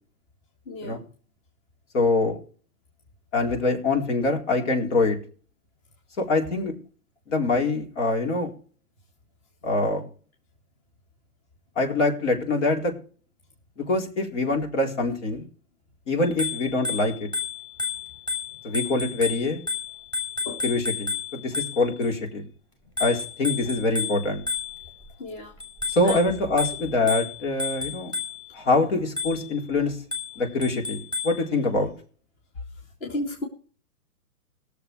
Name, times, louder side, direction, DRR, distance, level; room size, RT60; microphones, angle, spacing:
voice 1, 0.7-1.0 20.5-20.6 25.2-25.5 26.0-26.2 27.0-27.1 33.0-33.4, left 1 dB, 25° left, 1 dB, 2.2 m, -33 dB
voice 2, 1.9-2.4 3.3-5.2 6.2-6.7 7.3-8.5 9.6-10.1 11.8-12.9 13.8-15.5 16.1-17.3 18.6-19.6 20.6-22.4 23.0-24.4 25.9-28.1 28.5-30.0 30.4-31.9, left 2 dB, 50° left, 2 dB, 4.3 m, -24 dB
Bicycle bell, 16.2-22.1 23.0-25.1 25.6-28.6 29.2-29.6 30.1-31.5, left 5 dB, 10° left, 2.6 m, -32 dB
19.0 x 7.1 x 4.8 m, 0.42 s
hypercardioid pair, 150°, 45 cm